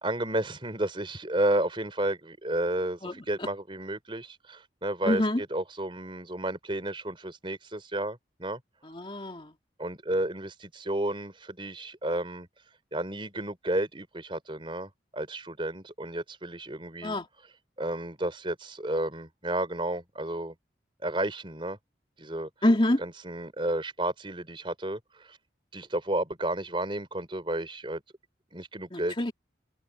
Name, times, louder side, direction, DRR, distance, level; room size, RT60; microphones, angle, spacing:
voice 1, 0.0-8.6 9.8-12.5 12.9-17.2 17.8-20.5 21.0-21.8 22.2-22.5 23.0-25.4 25.7-28.0 28.5-29.1, right 1 dB, 30° right, 4.2 m, -32 dB
voice 2, 5.1-5.4 8.9-9.5 17.0-17.3 22.6-23.0 28.9-29.3, left 1 dB, 30° left, 2.6 m, -26 dB
head